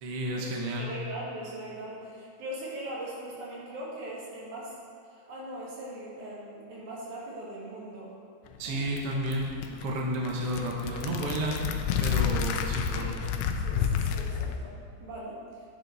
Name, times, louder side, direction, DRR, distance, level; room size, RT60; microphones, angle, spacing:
voice 1, 0.0-0.9 8.6-11.6 12.0-13.2, right 1 dB, 55° right, -1 dB, 2.0 m, -32 dB
voice 2, 0.8-4.7 5.2-8.1 8.6-8.8 11.2-11.4 13.0-13.2 13.6-14.7 15.0-15.4, right 1 dB, 80° right, -5 dB, 3.6 m, -40 dB
sound 1, 8.5-14.6, left 7 dB, 80° left, 2.0 m, -30 dB
11.0 x 9.7 x 4.1 m, 2.5 s
omnidirectional pair, 3.3 m